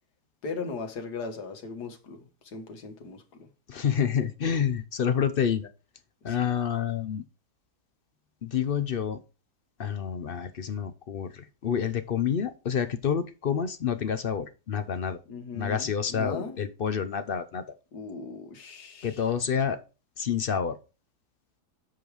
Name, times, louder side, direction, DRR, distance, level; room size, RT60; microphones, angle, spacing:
voice 1, 0.4-3.2 6.3-6.6 15.3-16.6 17.9-19.3, left 4 dB, 80° left, 2.0 m, -38 dB
voice 2, 3.7-5.7 6.2-7.2 8.4-9.2 9.8-15.2 15.5-17.6 19.0-19.8 20.2-20.8, left 7 dB, 60° left, 0.6 m, -28 dB
7.8 x 5.3 x 4.7 m
omnidirectional pair, 1.7 m